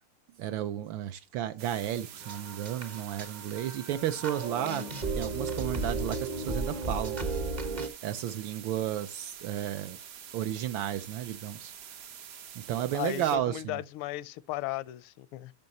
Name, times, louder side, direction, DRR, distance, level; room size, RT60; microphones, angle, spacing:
voice 1, 0.4-4.8 5.1-7.2 8.0-10.0 10.3-11.7 12.7-13.8, right 11 dB, 75° right, 1.2 m, -33 dB
sound 1, 1.6-13.4, right 8 dB, 60° right, 1.0 m, -47 dB
sound 2, 2.2-7.9, right 3 dB, 35° right, 0.6 m, -35 dB
voice 2, 12.9-15.5, left 16 dB, 85° left, 1.5 m, -36 dB
10.5 x 5.6 x 2.8 m
omnidirectional pair, 2.4 m